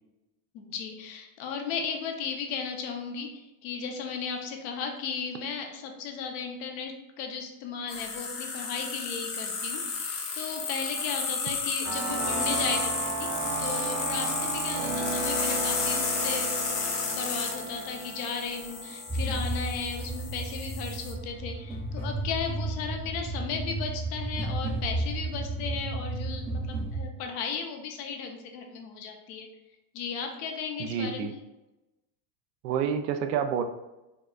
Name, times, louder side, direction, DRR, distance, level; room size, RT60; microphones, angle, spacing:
voice 1, 0.5-13.3 13.6-29.5 29.9-31.3, left 6 dB, 50° left, 4 dB, 0.7 m, -35 dB
sound 1, 7.9-21.1, left 5 dB, 70° left, 1.0 m, -32 dB
sound 2, 11.8-20.5, right 4 dB, 45° right, 0.7 m, -35 dB
sound 3, 19.1-27.0, right 2 dB, 5° right, 0.6 m, -33 dB
voice 2, 30.8-31.3 32.6-33.6, right 7 dB, 85° right, 8 dB, 0.6 m, -28 dB
4.7 x 2.3 x 2.3 m, 0.99 s
supercardioid pair, 125°, 48 cm